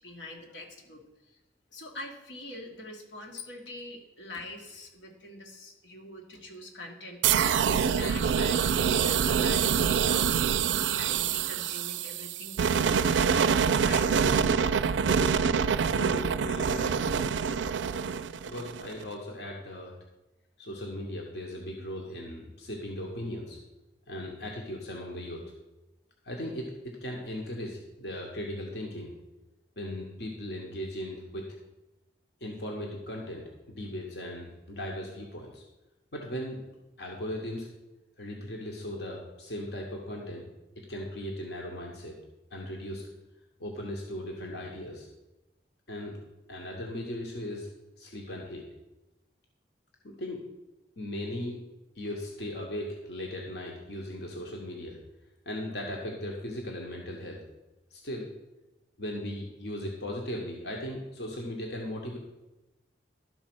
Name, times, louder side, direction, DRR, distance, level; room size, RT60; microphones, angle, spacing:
voice 1, 0.0-1.4 1.7-13.5 13.8-14.1, left 1 dB, 90° left, 1 dB, 1.7 m, -44 dB
sound 1, 7.2-19.0, right 7 dB, 90° right, 0.4 m, -26 dB
voice 2, 15.1-17.3 18.4-19.9 20.6-23.6 24.1-25.4 26.2-26.7 27.0-29.1 29.8-31.5 32.4-35.6 36.1-36.6 37.0-37.7 38.2-40.5 40.9-42.2 42.5-43.0 43.6-45.1 45.9-46.1 46.5-47.7 48.0-48.6 50.0-50.4 51.0-51.6 51.9-55.0 55.4-57.4 57.9-58.3 59.0-62.2, left 1 dB, 65° left, 0 dB, 1.2 m, -38 dB
12.0 x 4.2 x 6.1 m, 1.0 s
head